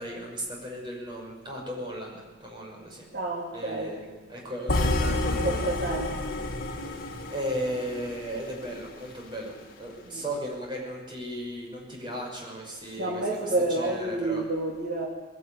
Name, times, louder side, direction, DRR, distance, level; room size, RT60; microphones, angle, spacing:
voice 1, 0.0-3.1 3.5-5.6 7.3-14.4, equal, 25° right, -1 dB, 5.9 m, -36 dB
voice 2, 3.1-4.0 5.4-6.1 6.8-6.9 10.1-10.2 13.0-15.1, right 2 dB, 60° right, -4 dB, 3.2 m, -29 dB
sound 1, 4.7-8.8, left 2 dB, 50° left, 2.2 m, -29 dB
20.5 x 17.5 x 8.9 m, 1.3 s
head